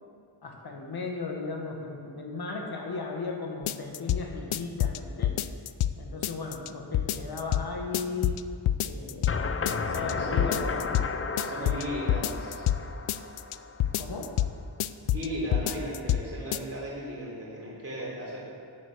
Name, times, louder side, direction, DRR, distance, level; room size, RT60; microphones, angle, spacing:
voice 1, 0.4-5.4 6.0-8.4 8.8-10.6 14.0-14.3 15.2-15.3, left 4 dB, 50° left, 1 dB, 1.7 m, -36 dB
sound 1, 3.7-4.2 4.5-5.9 6.2-6.7 6.9-7.7 7.9-8.4 8.7-9.4 9.7-10.1 10.4-11.1 11.4-12.8 13.1-13.6 13.8-14.5 14.8-15.3 15.5-16.2 16.5-16.6, left 12 dB, 80° left, 0.6 m, -26 dB
sound 2, 9.3-14.2, left 4 dB, 30° left, 0.5 m, -33 dB
voice 2, 10.0-10.8 11.3-12.7 15.0-18.4, right 1 dB, 30° right, -5 dB, 3.8 m, -36 dB
11.5 x 8.1 x 7.9 m, 2.3 s
wide cardioid pair, 175°, 49 cm